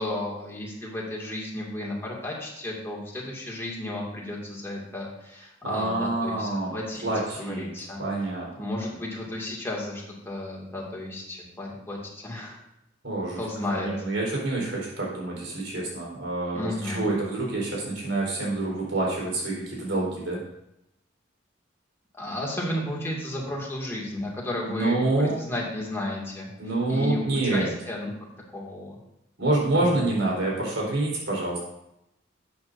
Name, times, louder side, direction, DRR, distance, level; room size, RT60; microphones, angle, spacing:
voice 1, 0.0-7.1 7.4-8.0 8.5-12.6 13.4-13.9 16.5-17.0 22.1-26.5 26.9-28.1 28.5-29.0 29.7-30.0, left 1 dB, 15° left, -3 dB, 2.3 m, -33 dB
voice 2, 5.6-6.7 7.0-7.7 8.0-8.5 13.0-13.4 13.7-20.4 24.7-25.4 26.6-27.7 29.4-31.6, right 2 dB, 80° right, -3 dB, 4.1 m, -27 dB
12.0 x 8.5 x 2.7 m, 0.84 s
head